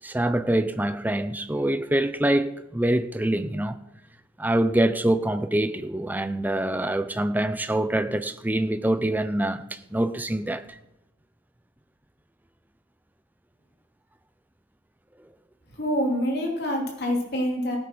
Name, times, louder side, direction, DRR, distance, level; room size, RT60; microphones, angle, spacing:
voice 1, 0.0-3.8 4.4-10.8, right 1 dB, 10° right, 0.5 m, -25 dB
voice 2, 15.8-17.8, equal, 50° left, 3.1 m, -26 dB
15.5 x 8.7 x 6.0 m
head